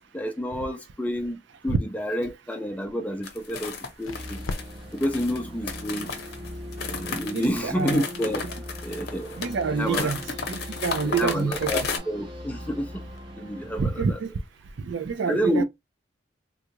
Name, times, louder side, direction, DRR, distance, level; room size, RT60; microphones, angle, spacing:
voice 1, 0.1-4.4 4.9-6.2 6.9-8.4 8.8-9.4 9.7-10.1 11.0-12.9 13.4-14.2 15.3-15.6, equal, 5° left, 0.5 m, -29 dB
sound 1, 2.7-15.1, left 3 dB, 75° left, 0.5 m, -47 dB
sound 2, 3.2-12.0, left 5 dB, 50° left, 0.8 m, -33 dB
sound 3, 4.0-14.1, equal, 25° right, 0.8 m, -40 dB
voice 2, 7.3-8.0 9.4-10.2 10.5-11.7 13.8-14.3 14.8-15.6, right 5 dB, 60° right, 0.4 m, -27 dB
3.6 x 2.4 x 2.8 m
head